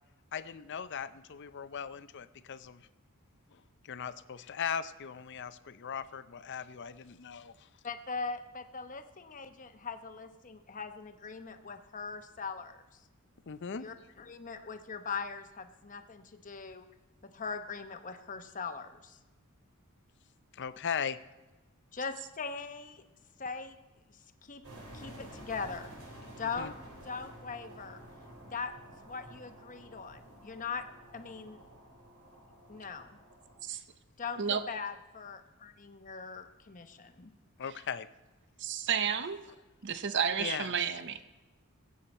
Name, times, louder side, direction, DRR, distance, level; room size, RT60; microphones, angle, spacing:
voice 1, 0.3-2.8 3.8-7.5 13.5-13.8 20.5-21.2 26.6-26.7 37.6-38.1 40.4-40.7, left 7 dB, 55° left, 13 dB, 0.5 m, -38 dB
voice 2, 7.8-12.8 13.8-16.9 17.2-19.2 21.9-23.0 23.4-23.7 24.1-24.6 24.9-25.9 26.4-26.7 27.0-28.0 28.5-28.7 29.0-30.8 31.1-31.6 32.7-33.2 34.2-37.3, left 5 dB, 35° left, 8 dB, 0.9 m, -40 dB
sound 1, 24.6-33.6, right 1 dB, 80° right, 3.7 m, -51 dB
voice 3, 38.6-39.4 39.8-41.2, right 7 dB, 55° right, 11 dB, 0.7 m, -31 dB
21.0 x 8.5 x 4.3 m, 1.1 s
head